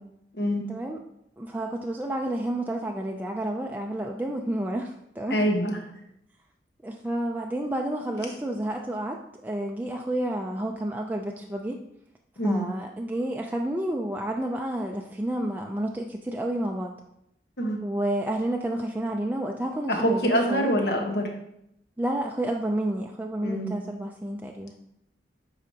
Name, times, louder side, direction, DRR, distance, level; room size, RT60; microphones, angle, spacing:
voice 1, 0.7-1.0 1.4-4.9 5.2-5.4 6.8-11.8 12.4-16.9 17.8-20.7 22.0-24.7, right 1 dB, 10° right, 1 dB, 0.3 m, -30 dB
voice 2, 5.3-5.8 12.4-12.6 17.6-17.8 19.9-21.3 23.4-23.7, equal, 70° left, 2 dB, 1.2 m, -25 dB
8.6 x 5.0 x 2.8 m, 0.78 s
head